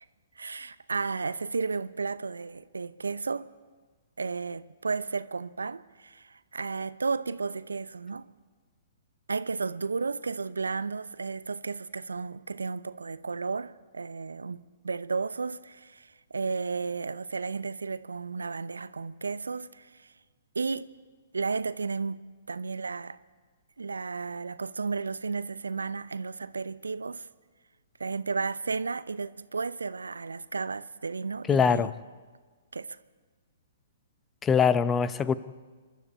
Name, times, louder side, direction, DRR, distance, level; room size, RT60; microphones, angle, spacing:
voice 1, 0.4-3.5 4.2-8.3 9.3-20.1 20.5-20.9 21.3-22.2 22.5-23.2 23.8-27.3 28.0-31.9 32.7-33.0, right 4 dB, 75° right, 0.8 m, -33 dB
voice 2, 31.5-31.9 34.4-35.3, left 6 dB, 15° left, 0.8 m, -23 dB
29.5 x 12.5 x 8.3 m
figure-of-eight pair, 120°, 0 cm